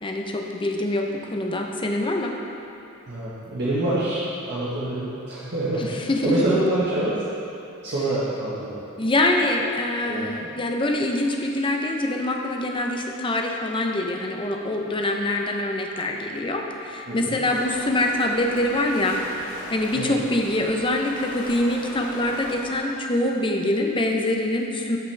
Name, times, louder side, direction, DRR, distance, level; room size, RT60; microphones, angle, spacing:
voice 1, 0.0-2.3 5.8-6.5 9.0-19.2 19.7-25.0, left 1 dB, 25° left, 2 dB, 0.7 m, -24 dB
voice 2, 3.1-5.8 6.2-7.2 7.8-8.8 9.6-9.7 10.1-10.3 17.1-17.3 19.9-20.2, right 1 dB, 50° right, -9 dB, 1.3 m, -26 dB
sound 1, 17.5-22.8, left 1 dB, 70° left, 2.0 m, -39 dB
13.0 x 5.8 x 3.4 m, 2.9 s
head